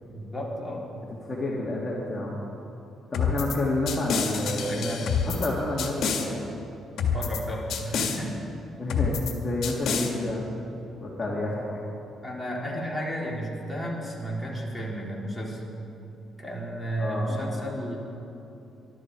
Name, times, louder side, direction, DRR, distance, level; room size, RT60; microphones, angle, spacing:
voice 1, 0.0-0.9 4.6-5.1 7.0-8.4 11.2-11.4 12.2-15.6 16.4-18.0, equal, 10° left, -4 dB, 4.0 m, -33 dB
voice 2, 1.2-2.4 3.1-6.4 8.8-10.6 11.0-11.8 17.0-17.6, left 2 dB, 25° left, -5 dB, 2.7 m, -29 dB
sound 1, 3.1-3.6 3.9-5.5 5.8-6.3 7.0-7.4 7.7-8.2 8.9-9.3 9.6-10.1, left 6 dB, 70° left, 1.8 m, -27 dB
21.5 x 12.5 x 4.9 m, 3.0 s
cardioid pair, 90°, 0 cm